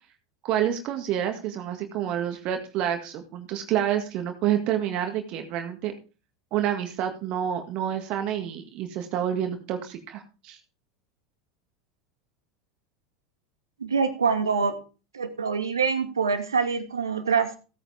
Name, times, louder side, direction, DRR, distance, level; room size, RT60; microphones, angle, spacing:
voice 1, 0.4-5.9 6.5-10.6, right 10 dB, 50° right, 5 dB, 2.0 m, -28 dB
voice 2, 13.8-14.8 15.1-17.5, right 5 dB, 85° right, 8 dB, 2.0 m, -25 dB
16.5 x 8.9 x 3.5 m, 0.34 s
hypercardioid pair, 85°, 2 cm